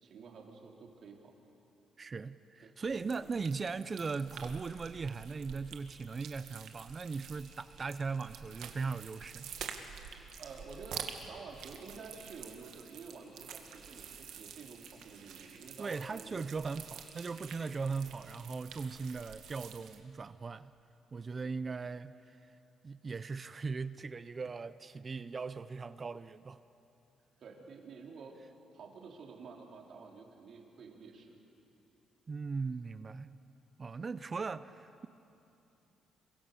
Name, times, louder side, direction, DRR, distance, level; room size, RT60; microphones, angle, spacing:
voice 1, 0.0-1.3 2.6-2.7 10.1-11.0 11.3-16.4 27.4-28.3 28.7-31.4, right 5 dB, 65° right, 0 dB, 3.9 m, -50 dB
voice 2, 2.0-9.5 15.8-20.7 21.1-22.5 22.8-26.6 32.3-33.4 33.8-35.1, right 4 dB, 35° right, 14 dB, 0.6 m, -39 dB
sound 1, 2.8-20.0, right 8 dB, 80° right, 2.0 m, -48 dB
sound 2, 7.0-18.3, right 1 dB, ahead, 6.3 m, -65 dB
27.0 x 24.0 x 7.0 m, 2.9 s
cardioid pair, 90°, 0 cm